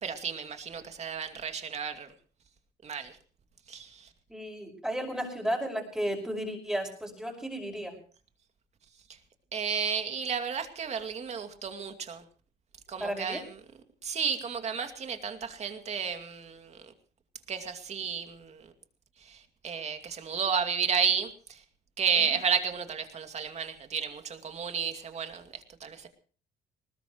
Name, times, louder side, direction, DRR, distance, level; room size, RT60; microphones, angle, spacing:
voice 1, 0.0-2.1 2.8-3.1 3.7-4.1 9.5-12.2 12.9-13.6 14.0-16.9 17.5-18.7 19.2-21.6 22.0-26.1, right 6 dB, 40° right, 7 dB, 2.5 m, -32 dB
voice 2, 4.3-7.9 13.0-13.4 22.1-22.3, equal, 5° right, 0 dB, 5.5 m, -33 dB
20.5 x 19.5 x 3.1 m, 0.41 s
cardioid pair, 110°, 17 cm